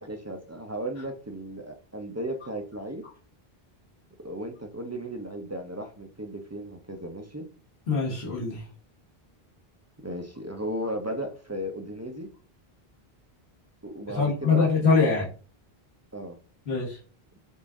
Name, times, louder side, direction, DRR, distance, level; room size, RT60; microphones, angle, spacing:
voice 1, 0.0-3.0 4.2-7.5 10.0-12.3 13.8-14.7 16.1-16.4, right 1 dB, 25° right, 4 dB, 0.3 m, -35 dB
voice 2, 7.9-8.6 14.1-15.3 16.7-17.0, left 4 dB, 85° left, -5 dB, 1.5 m, -23 dB
5.4 x 2.4 x 3.6 m, 0.38 s
omnidirectional pair, 1.0 m